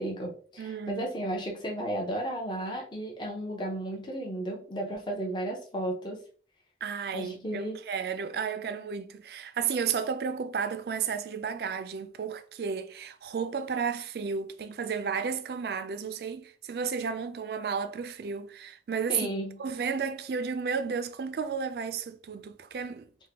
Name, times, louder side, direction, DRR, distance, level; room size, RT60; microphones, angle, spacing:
voice 1, 0.0-6.2 7.1-7.8 19.1-19.6, right 1 dB, 25° left, 0.7 m, -34 dB
voice 2, 0.6-1.1 6.8-19.3 19.6-23.3, right 6 dB, 65° right, 0.3 m, -33 dB
3.5 x 2.2 x 2.8 m
head